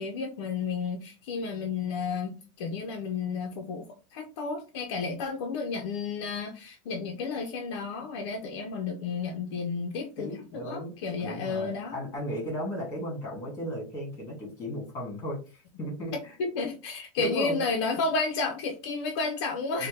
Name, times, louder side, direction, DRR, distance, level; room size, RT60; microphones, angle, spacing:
voice 1, 0.0-11.9 16.4-19.9, left 4 dB, 55° left, 3 dB, 0.6 m, -32 dB
voice 2, 10.2-16.4 17.2-17.6 19.8-19.9, equal, 20° left, -1 dB, 2.0 m, -35 dB
4.1 x 2.2 x 3.2 m, 0.33 s
supercardioid pair, 165°, 16 cm